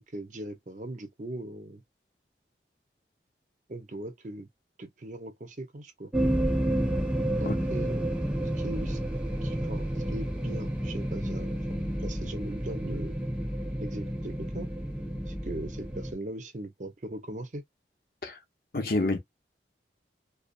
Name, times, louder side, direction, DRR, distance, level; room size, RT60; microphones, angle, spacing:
voice 1, 0.1-1.8 3.7-4.5 4.8-6.1 7.4-8.1 8.6-9.0 9.4-13.2 13.8-14.7 15.3-17.6, right 1 dB, 45° right, 0.7 m, -39 dB
sound 1, 6.1-16.1, right 1 dB, 5° right, 0.4 m, -30 dB
voice 2, 18.7-19.2, left 2 dB, 55° left, 0.8 m, -27 dB
2.6 x 2.4 x 2.4 m
head